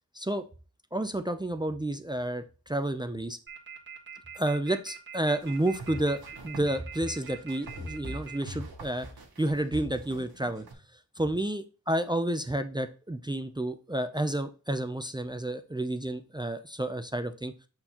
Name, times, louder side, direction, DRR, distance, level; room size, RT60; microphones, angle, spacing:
voice 1, 0.9-3.4 4.4-9.1 9.4-10.7 11.2-17.5, right 1 dB, 10° right, 10 dB, 0.4 m, -30 dB
sound 1, 3.5-8.4, right 7 dB, 30° right, 1.5 m, -43 dB
sound 2, 5.4-10.7, right 1 dB, 85° right, 1.4 m, -42 dB
7.7 x 4.2 x 2.9 m, 0.34 s
wide cardioid pair, 115°, 36 cm